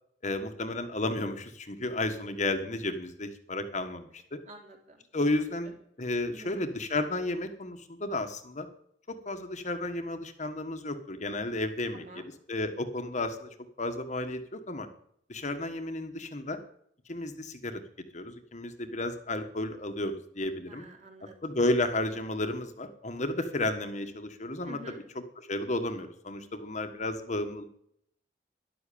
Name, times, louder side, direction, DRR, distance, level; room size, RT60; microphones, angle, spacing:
voice 1, 0.2-4.4 5.1-8.7 9.1-12.2 12.5-13.5 13.8-14.9 15.3-16.6 17.1-17.8 18.1-20.8 21.4-24.8 25.5-27.6, left 2 dB, 40° left, 7 dB, 1.5 m, -32 dB
voice 2, 4.5-5.1 6.3-6.7 11.9-12.3 20.7-21.6 24.6-25.0, equal, 40° right, 2 dB, 3.5 m, -48 dB
13.0 x 11.5 x 8.6 m, 0.69 s
head